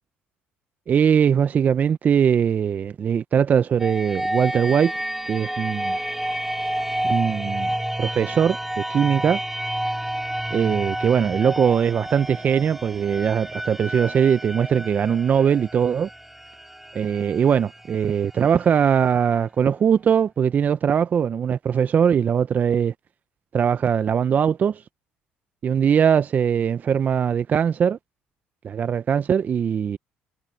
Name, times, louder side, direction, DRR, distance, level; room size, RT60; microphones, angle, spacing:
voice 1, 0.9-4.9 5.3-6.0 7.1-7.7 8.0-9.4 10.5-16.1 16.9-22.9 23.5-24.8 25.6-28.0 28.6-30.0, right 7 dB, 45° right, 0.7 m, -21 dB
sound 1, 3.8-19.4, right 1 dB, 5° right, 4.1 m, -30 dB
supercardioid pair, 75°, 4 cm